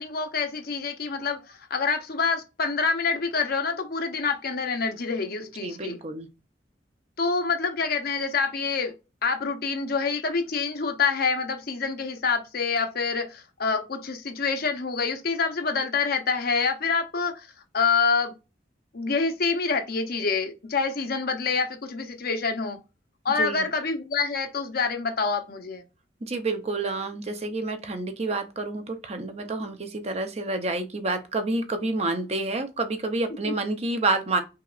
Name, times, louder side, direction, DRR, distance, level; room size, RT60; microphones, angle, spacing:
voice 1, 0.0-6.0 7.2-8.9 9.2-17.5 17.7-18.4 18.9-22.8 23.2-25.8 33.4-33.5, left 5 dB, 60° left, 0.8 m, -26 dB
voice 2, 5.6-6.3 23.4-23.7 26.2-34.4, right 2 dB, 40° right, 0.7 m, -28 dB
5.7 x 2.9 x 2.4 m
head